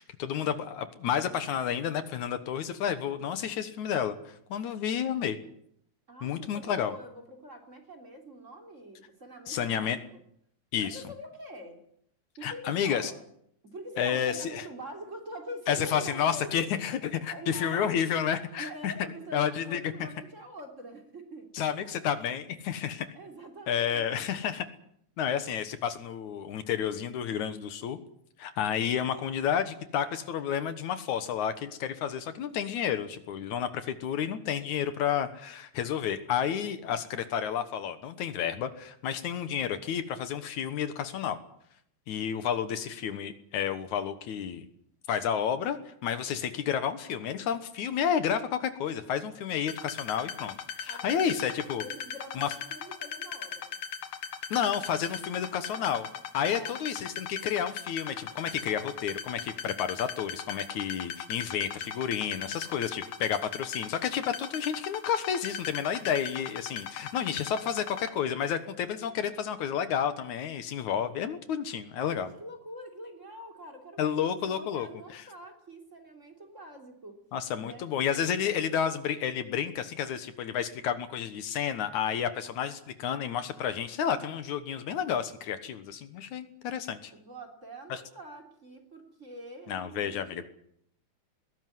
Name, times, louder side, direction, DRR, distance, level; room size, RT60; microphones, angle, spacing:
voice 1, 0.0-5.4 6.2-6.9 9.5-10.0 10.7-11.0 12.4-13.1 14.0-14.6 15.7-18.9 19.3-20.1 21.5-23.1 23.7-24.7 25.2-28.0 28.4-41.4 42.1-44.7 45.1-50.6 50.8-51.8 52.4-52.5 54.5-56.1 56.3-72.3 74.0-74.9 75.1-75.2 77.3-87.1 87.9-88.0 89.7-90.5, left 8 dB, 75° left, 10 dB, 2.6 m, -31 dB
voice 2, 6.1-10.0 10.8-11.8 12.4-13.2 13.7-16.7 17.3-17.9 18.6-21.5 23.1-24.2 50.9-51.4 51.8-53.7 56.5-56.8 72.0-77.2 77.6-79.0 87.1-90.5, right 1 dB, 25° right, 5 dB, 3.5 m, -45 dB
sound 1, 49.7-68.1, left 7 dB, 90° left, 3.1 m, -39 dB
20.5 x 17.5 x 9.6 m, 0.71 s
omnidirectional pair, 3.5 m